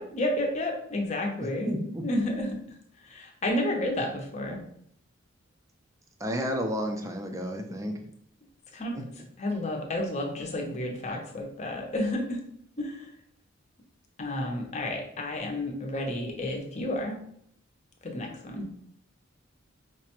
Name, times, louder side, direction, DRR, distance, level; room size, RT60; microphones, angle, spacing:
voice 1, 0.0-1.7 2.0-2.6 3.0-4.6 8.7-9.0 9.4-12.4 12.8-13.1 14.2-17.2 18.0-18.7, left 1 dB, 35° left, 2 dB, 0.6 m, -31 dB
voice 2, 1.7-2.0 6.2-8.0 8.9-9.0, equal, 15° right, 3 dB, 0.4 m, -31 dB
4.7 x 2.1 x 2.9 m, 0.69 s
head